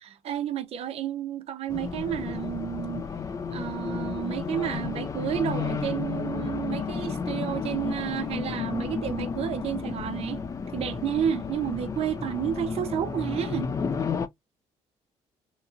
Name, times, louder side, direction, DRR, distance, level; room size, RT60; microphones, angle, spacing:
voice 1, 0.2-3.0 3.5-10.4 10.7-13.7, right 10 dB, 55° right, 0.5 m, -31 dB
Race car auto racing, 1.7-14.3, left 5 dB, 25° left, 0.3 m, -32 dB
2.9 x 2.6 x 2.3 m
cardioid pair, 110°, 12 cm